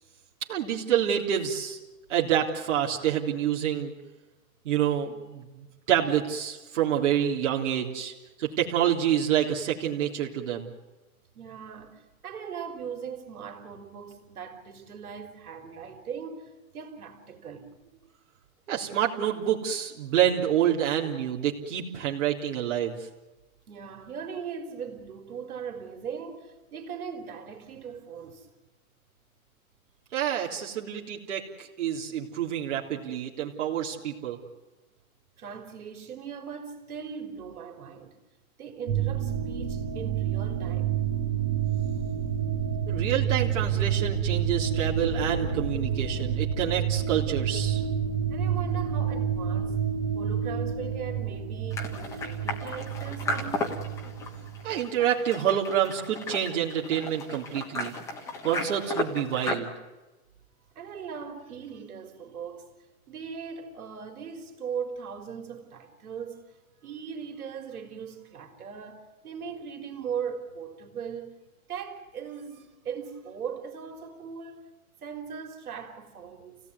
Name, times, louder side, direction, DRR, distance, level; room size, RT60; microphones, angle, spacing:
voice 1, 0.5-1.8 2.1-3.9 4.7-8.1 8.4-10.7 18.7-23.0 30.1-34.4 42.9-47.8 54.6-57.9 58.4-59.7, right 10 dB, 55° right, 3.5 m, -27 dB
voice 2, 11.3-17.7 23.7-28.5 35.4-38.2 38.6-41.0 48.3-49.8 50.1-53.9 60.7-62.7 63.1-66.6 66.8-71.4 71.7-74.7 75.0-76.6, right 7 dB, 75° right, 3.8 m, -39 dB
sound 1, 38.9-54.8, right 8 dB, 30° right, 4.6 m, -29 dB
sound 2, 51.7-59.6, left 2 dB, 5° left, 1.3 m, -35 dB
29.5 x 17.0 x 9.6 m
hypercardioid pair, 175°, 43 cm